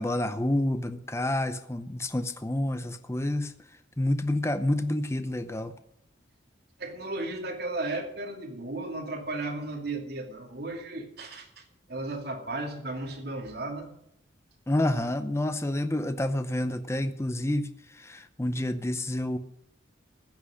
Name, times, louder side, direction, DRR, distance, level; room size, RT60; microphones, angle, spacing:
voice 1, 0.0-3.5 4.0-5.7 14.7-17.7 18.0-19.4, left 1 dB, 15° left, 10 dB, 0.6 m, -28 dB
voice 2, 6.8-13.9, right 2 dB, 55° right, 1 dB, 2.6 m, -35 dB
15.5 x 6.0 x 9.9 m, 0.74 s
head